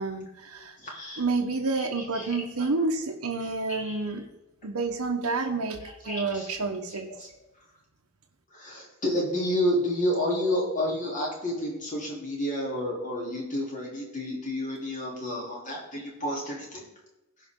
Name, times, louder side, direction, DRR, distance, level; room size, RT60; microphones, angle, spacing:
voice 1, 0.0-0.8 1.2-4.3 4.6-5.8 6.0-7.1, right 3 dB, 80° right, 2 dB, 1.0 m, -29 dB
voice 2, 0.8-1.2 1.7-2.3 3.4-4.0 5.8-6.6 7.1-7.3 8.5-16.8, left 1 dB, 35° left, -3 dB, 3.2 m, -30 dB
16.5 x 5.6 x 3.7 m, 0.98 s
head